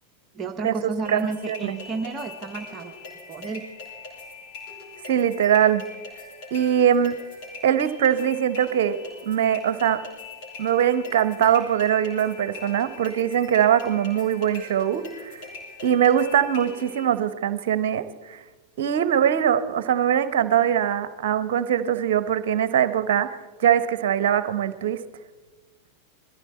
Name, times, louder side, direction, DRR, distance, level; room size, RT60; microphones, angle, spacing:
voice 1, 0.3-2.9 3.3-3.6, right 4 dB, 25° right, 4 dB, 1.0 m, -31 dB
sound 1, 1.0-17.0, left 3 dB, 45° left, 5.6 m, -42 dB
voice 2, 5.0-5.8 6.5-7.2 7.6-10.0 10.6-15.4 15.8-18.0 18.3-18.4 18.8-23.3 23.6-25.0, right 9 dB, 55° right, 13 dB, 0.9 m, -22 dB
21.0 x 15.0 x 4.3 m, 1.3 s
figure-of-eight pair, 90°, 0 cm